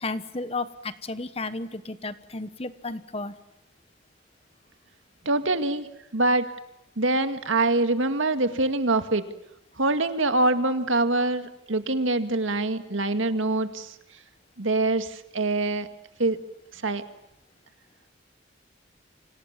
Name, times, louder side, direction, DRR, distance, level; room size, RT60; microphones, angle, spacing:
voice 1, 0.0-3.3, left 3 dB, 30° left, 13 dB, 1.2 m, -33 dB
voice 2, 5.3-5.9 6.1-6.5 7.0-9.2 9.8-13.9 14.6-15.9 16.2-16.4 16.8-17.0, right 2 dB, 85° right, 9 dB, 2.0 m, -24 dB
29.5 x 26.0 x 7.4 m, 0.82 s
head